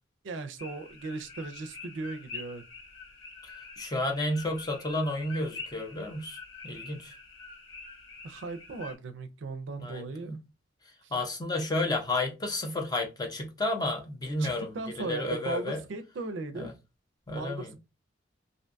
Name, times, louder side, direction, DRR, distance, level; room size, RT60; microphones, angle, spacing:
voice 1, 0.2-2.6 8.2-10.4 11.0-11.1 14.4-16.7 17.3-17.8, right 3 dB, 70° right, 0.4 m, -37 dB
sound 1, 0.6-8.9, left 3 dB, 90° left, 0.9 m, -46 dB
voice 2, 3.8-6.4 6.6-7.1 9.8-10.4 11.1-14.7 15.0-15.8 16.5-16.7 17.3-17.7, left 2 dB, 20° left, 0.5 m, -31 dB
2.6 x 2.2 x 2.5 m
head